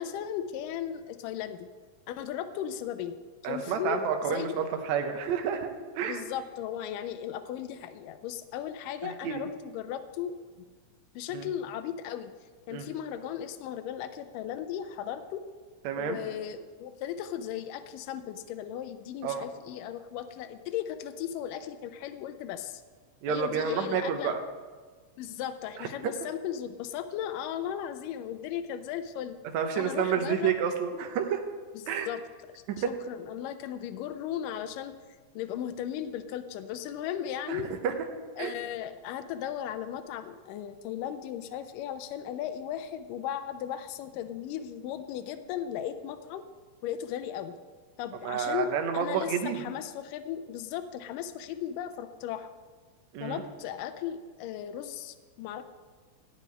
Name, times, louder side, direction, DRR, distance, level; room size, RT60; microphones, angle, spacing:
voice 1, 0.0-1.7 2.1-3.2 3.4-4.0 4.3-4.6 6.0-10.3 11.2-12.3 12.7-15.4 16.0-22.8 23.3-24.4 25.2-29.4 29.8-30.6 32.1-32.2 32.5-32.6 33.1-34.9 35.4-37.7 38.4-46.4 46.8-47.6 48.0-52.5 53.2-55.6, left 10 dB, 80° left, 9 dB, 2.2 m, -36 dB
voice 2, 3.4-6.2 9.0-9.5 11.3-11.5 12.7-12.9 15.8-16.2 19.2-19.4 23.2-24.4 25.8-25.9 29.5-31.4 31.9-32.1 32.8-32.9 37.5-37.9 38.4-38.5 48.2-49.7 53.1-53.4, right 7 dB, 65° right, 5 dB, 2.0 m, -30 dB
14.5 x 5.6 x 9.3 m, 1.4 s
omnidirectional pair, 3.9 m